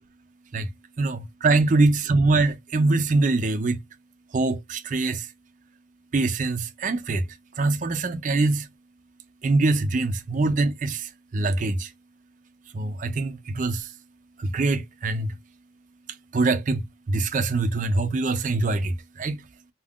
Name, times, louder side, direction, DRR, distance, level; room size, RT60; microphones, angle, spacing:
voice 1, 1.0-3.8 4.3-5.3 6.1-7.3 7.5-8.7 9.4-11.9 12.7-13.9 14.4-15.3 16.3-19.4, right 3 dB, 40° right, 0.4 m, -24 dB
3.5 x 2.3 x 2.3 m
head